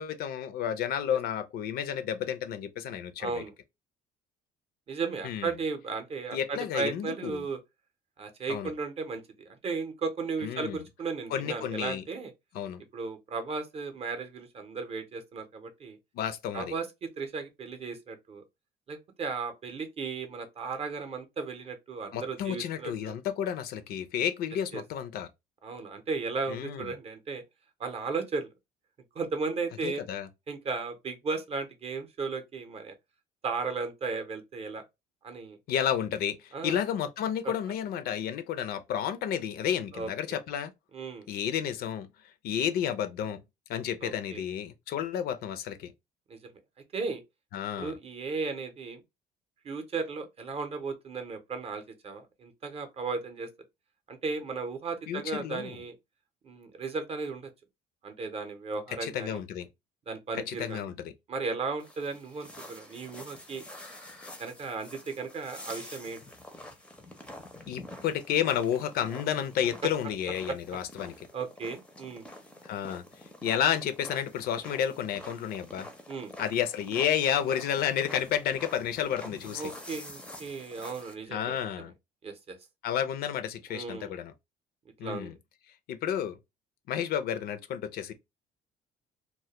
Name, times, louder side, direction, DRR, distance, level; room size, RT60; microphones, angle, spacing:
voice 1, 0.0-3.4 5.2-5.5 6.3-7.5 8.5-8.7 10.4-10.8 11.3-12.0 12.5-12.8 16.1-16.7 22.1-25.3 26.5-26.9 29.8-30.3 35.7-40.7 41.3-42.1 42.4-43.4 43.7-45.9 47.5-48.0 55.1-55.8 59.0-59.7 60.3-61.1 67.7-71.1 72.6-73.0 73.4-75.9 76.4-79.7 81.3-81.9 82.8-84.3 85.0-85.3 85.9-86.4 86.9-88.1, left 9 dB, 65° left, 0.4 m, -31 dB
voice 2, 3.2-3.5 4.9-7.6 8.2-12.3 12.9-16.0 16.5-18.4 18.9-23.1 24.7-24.8 25.6-27.4 27.8-28.5 29.1-30.0 30.5-32.9 33.4-34.8 35.2-35.6 36.5-36.8 37.4-37.5 39.9-40.1 40.9-41.3 44.0-44.4 46.3-46.4 46.9-47.2 47.8-49.0 49.6-53.5 54.1-55.9 56.4-57.5 58.0-59.4 60.1-60.9 61.3-63.6 64.4-66.2 70.5-70.6 71.3-72.2 76.1-76.3 79.5-81.9 82.2-82.6 83.7-84.1 85.0-85.3, right 4 dB, 35° right, 0.6 m, -35 dB
sound 1, 61.8-81.1, left 1 dB, 5° left, 0.4 m, -47 dB
2.2 x 2.1 x 2.8 m
cardioid pair, 110°, 17 cm